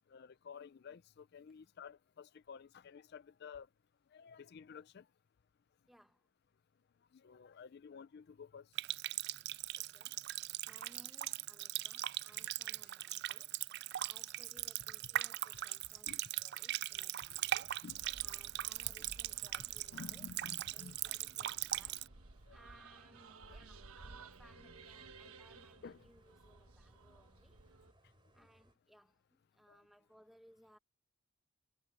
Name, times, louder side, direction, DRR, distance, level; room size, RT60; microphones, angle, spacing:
voice 1, 0.1-3.7 4.1-5.1 7.1-8.7 12.3-12.5 12.9-13.0 15.5-16.5 17.3-17.4 17.8-18.0 19.9-21.0 22.5-22.6 23.5-23.6 25.8-26.1 29.7-29.8, left 6 dB, 50° left, 0.4 m, -53 dB
voice 2, 5.9-6.3 9.8-10.3 10.7-17.8 18.2-20.3 20.7-22.2 22.5-27.6 28.3-30.8, equal, ahead, 1.1 m, -65 dB
Water tap faucet, 8.8-22.1, right 14 dB, 50° right, 0.3 m, -40 dB
sound 1, 17.3-28.7, right 1 dB, 25° right, 4.0 m, -68 dB
sound 2, 17.9-27.9, right 3 dB, 90° right, 1.3 m, -57 dB
head